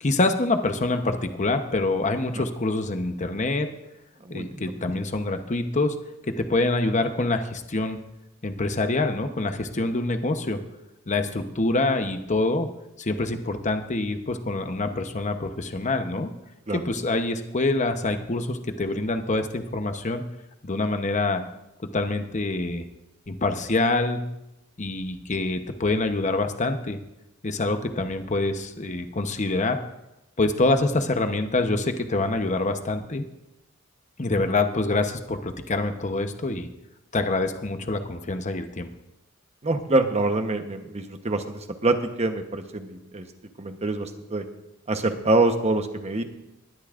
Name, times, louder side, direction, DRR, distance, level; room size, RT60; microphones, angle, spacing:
voice 1, 0.0-3.7 4.3-5.9 6.3-8.0 8.4-10.6 11.1-12.7 13.0-16.3 16.7-20.3 20.6-21.4 21.8-22.8 23.3-24.3 24.8-27.0 27.4-29.8 30.4-33.3 34.2-36.7 37.1-38.9, left 2 dB, 35° left, 7 dB, 0.9 m, -25 dB
voice 2, 4.2-4.8 16.7-16.8 39.6-43.3 43.6-44.4 44.9-46.2, right 2 dB, 30° right, 7 dB, 1.0 m, -25 dB
20.5 x 12.0 x 2.5 m, 0.90 s
head